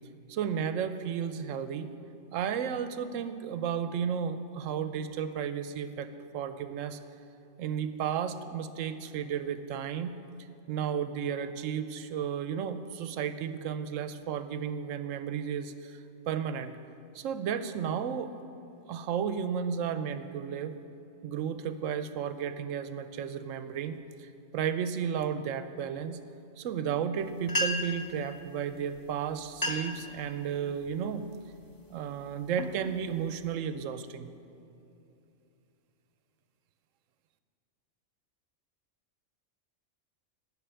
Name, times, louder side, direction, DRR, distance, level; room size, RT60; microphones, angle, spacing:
voice 1, 0.3-1.9 2.3-6.1 6.3-7.0 7.6-10.2 10.7-16.8 17.1-18.3 18.9-20.8 21.2-26.2 26.6-31.3 31.9-34.3, right 8 dB, 90° right, 11 dB, 1.0 m, -33 dB
sound 1, 27.2-27.3 27.5-28.1 29.0-29.1 29.5-30.0 30.5-30.9 31.5-31.8 32.3-33.5, left 1 dB, 20° left, 0.7 m, -33 dB
10.0 x 6.6 x 9.0 m, 2.8 s
omnidirectional pair, 1.3 m